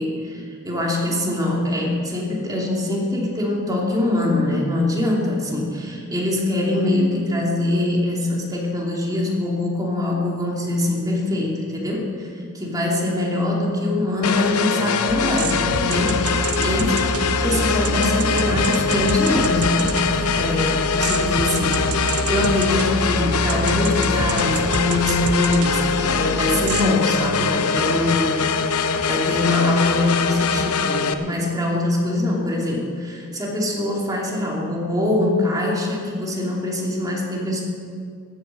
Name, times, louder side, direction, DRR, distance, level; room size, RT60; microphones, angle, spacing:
voice 1, 0.0-12.3 12.5-16.2 16.6-17.0 17.4-20.7 21.0-28.4 29.0-37.6, left 1 dB, 15° right, -2 dB, 2.6 m, -23 dB
sound 1, 14.2-31.1, left 5 dB, 90° left, 0.8 m, -23 dB
sound 2, 15.1-26.9, right 2 dB, 85° right, 1.1 m, -27 dB
14.0 x 9.2 x 7.7 m, 2.1 s
head